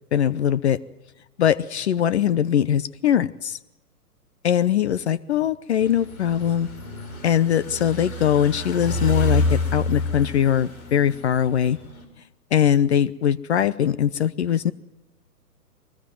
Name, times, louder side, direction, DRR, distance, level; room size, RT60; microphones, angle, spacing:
voice 1, 0.1-0.8 1.4-3.6 4.4-6.7 7.2-11.8 12.5-14.7, left 9 dB, 45° left, 16 dB, 0.8 m, -21 dB
sound 1, 5.8-12.0, left 2 dB, 60° left, 5.5 m, -28 dB
23.0 x 20.0 x 9.3 m, 0.96 s
figure-of-eight pair, 125°, 47 cm